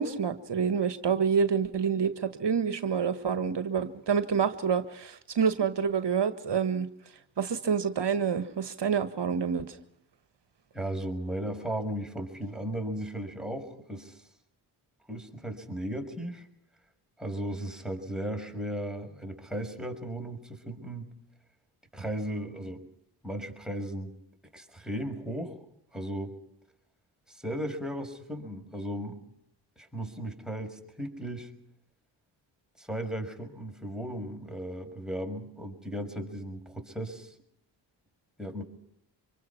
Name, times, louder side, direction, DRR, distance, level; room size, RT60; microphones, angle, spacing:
voice 1, 0.0-6.9 7.4-9.8, right 6 dB, 55° right, 11 dB, 1.6 m, -27 dB
voice 2, 10.7-14.3 15.1-16.5 17.2-21.1 21.9-22.8 23.2-24.1 24.5-25.6 25.9-26.3 27.3-29.2 29.8-31.5 32.8-37.4 38.4-38.6, right 1 dB, ahead, 2 dB, 6.2 m, -36 dB
26.0 x 23.0 x 6.0 m, 0.73 s
supercardioid pair, 45°, 49 cm